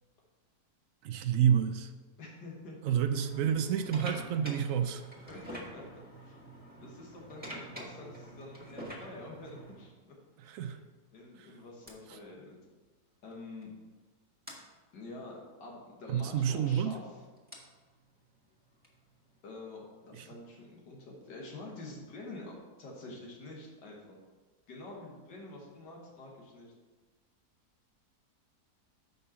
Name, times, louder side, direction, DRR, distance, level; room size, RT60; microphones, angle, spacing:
voice 1, 1.0-1.9 2.8-5.0 10.4-10.8 11.4-11.5 12.1-12.2 16.1-16.9 20.1-20.3, right 9 dB, 70° right, 7 dB, 0.8 m, -29 dB
voice 2, 2.2-2.8 5.3-5.8 6.2-6.4 6.8-10.2 11.1-12.6 13.2-13.7 14.9-17.0 19.4-24.2 24.7-26.7, left 2 dB, 85° left, -1 dB, 1.9 m, -47 dB
sound 1, 3.1-9.9 10.7-10.9 11.9-12.0 13.3-13.4 13.6-13.8 14.5-14.6 16.4-19.5, right 1 dB, 5° right, 1.5 m, -47 dB
6.7 x 5.4 x 5.6 m, 1.3 s
omnidirectional pair, 1.8 m